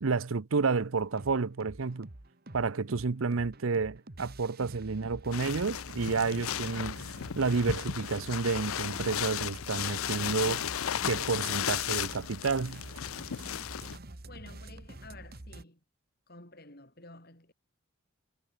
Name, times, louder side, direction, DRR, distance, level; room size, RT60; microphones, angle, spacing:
voice 1, 0.0-2.1 2.5-7.0 7.4-10.6 11.1-12.8, right 4 dB, 75° right, 0.7 m, -30 dB
sound 1, 1.0-15.6, right 1 dB, 45° right, 1.6 m, -47 dB
sound 2, 5.3-14.0, left 10 dB, 80° left, 0.5 m, -35 dB
voice 2, 14.2-15.8 16.3-17.5, left 2 dB, 45° left, 7.9 m, -51 dB
head